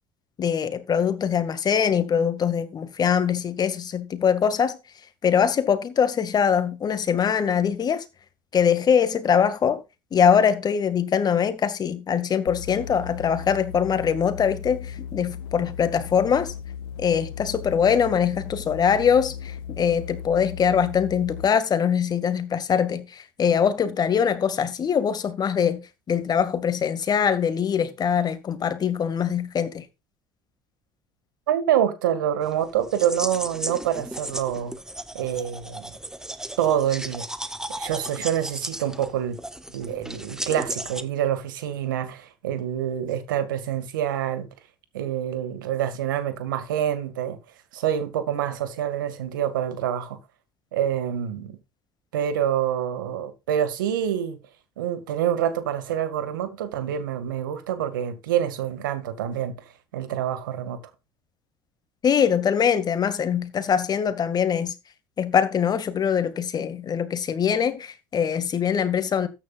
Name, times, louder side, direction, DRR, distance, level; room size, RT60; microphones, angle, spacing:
voice 1, 0.4-4.8 5.2-8.0 8.5-9.8 10.1-16.5 17.0-29.9 62.0-64.7 65.2-69.3, left 7 dB, 40° left, 2.1 m, -23 dB
sound 1, 12.5-21.6, left 8 dB, 85° left, 1.2 m, -36 dB
voice 2, 31.5-34.7 35.1-35.9 36.6-37.3 37.8-39.4 39.7-44.5 44.9-47.4 47.7-50.2 50.7-51.6 52.1-54.4 54.8-59.6 59.9-60.8, right 10 dB, 90° right, 2.0 m, -26 dB
sound 2, 32.4-41.0, right 1 dB, 5° right, 1.4 m, -35 dB
13.5 x 9.9 x 2.5 m
hypercardioid pair, 80°, 10 cm